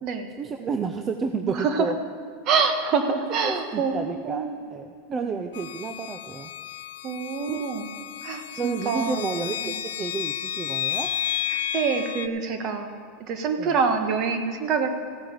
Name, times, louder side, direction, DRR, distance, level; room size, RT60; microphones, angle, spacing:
voice 1, 0.4-2.0 3.4-6.5 7.5-7.6 8.6-11.1 13.6-13.8, right 5 dB, 25° right, 7 dB, 0.5 m, -31 dB
voice 2, 1.5-1.9 2.4-4.5 5.1-5.3 7.0-7.9 8.2-9.3 9.6-9.7 11.5-12.9 13.3-14.9, right 5 dB, 40° right, 7 dB, 1.3 m, -26 dB
sound 1, 5.5-12.3, left 10 dB, 90° left, 0.6 m, -32 dB
15.5 x 9.1 x 5.3 m, 2.3 s
supercardioid pair, 135°, 0 cm